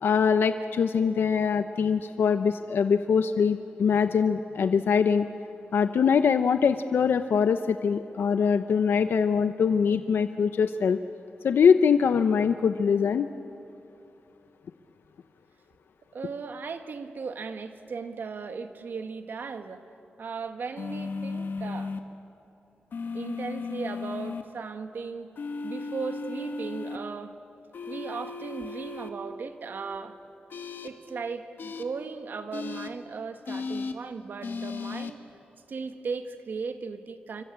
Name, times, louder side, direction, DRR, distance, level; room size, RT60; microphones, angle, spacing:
voice 1, 0.0-5.2 5.7-11.0 11.4-13.3, left 6 dB, 90° left, 9 dB, 0.7 m, -23 dB
voice 2, 16.1-19.8 20.2-21.9 23.1-25.3 25.6-27.4 27.9-30.2 30.8-35.2 35.7-37.4, right 5 dB, 65° right, 7 dB, 1.7 m, -37 dB
sound 1, 20.8-22.0 22.9-24.4 25.4-27.0 27.7-29.1 30.5-30.9 31.6-31.8 32.5-32.9 33.5-33.9 34.4-35.1, left 4 dB, 70° left, 1.7 m, -35 dB
27.5 x 24.0 x 8.7 m, 3.0 s
wide cardioid pair, 150°, 4 cm